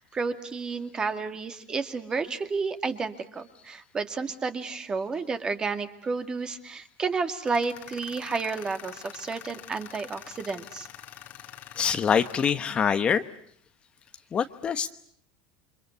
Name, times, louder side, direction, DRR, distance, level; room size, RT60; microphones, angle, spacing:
voice 1, 0.0-10.9, right 4 dB, 20° right, 8 dB, 2.2 m, -31 dB
Tools, 7.4-12.5, left 12 dB, 45° left, 2.2 m, -45 dB
voice 2, 11.8-13.2 14.3-14.9, left 7 dB, 25° left, 9 dB, 1.1 m, -24 dB
29.0 x 25.0 x 8.2 m, 0.64 s
supercardioid pair, 135°, 4 cm